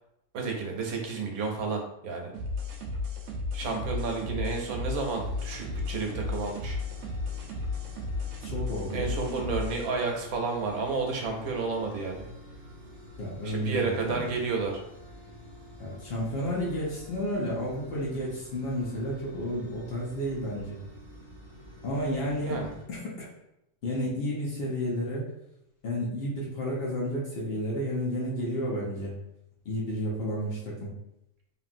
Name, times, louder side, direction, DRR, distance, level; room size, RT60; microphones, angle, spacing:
voice 1, 0.3-2.3 3.5-6.8 8.9-12.3 13.4-14.8 22.4-22.7, right 4 dB, 90° right, 2 dB, 1.1 m, -31 dB
sound 1, 2.3-9.9, left 3 dB, 65° right, 0.9 m, -34 dB
sound 2, 5.2-22.9, left 1 dB, 20° left, 1.2 m, -48 dB
voice 2, 8.4-9.1 13.2-14.2 15.8-20.8 21.8-22.6 22.9-23.3 23.8-25.2 25.8-29.2 29.6-30.9, equal, 50° left, -4 dB, 0.9 m, -31 dB
2.9 x 2.6 x 2.5 m, 0.82 s
omnidirectional pair, 1.5 m